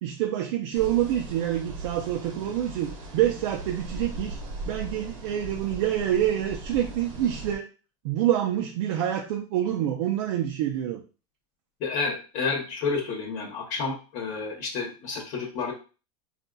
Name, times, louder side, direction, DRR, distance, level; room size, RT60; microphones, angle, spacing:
voice 1, 0.0-4.4 4.7-7.7 8.0-11.0, right 11 dB, 70° right, 3 dB, 0.5 m, -27 dB
sound 1, 0.7-7.6, right 2 dB, 90° right, 1.0 m, -39 dB
voice 2, 11.8-15.7, left 4 dB, 55° left, 1 dB, 0.9 m, -30 dB
4.1 x 2.5 x 2.2 m, 0.35 s
supercardioid pair, 130°, 16 cm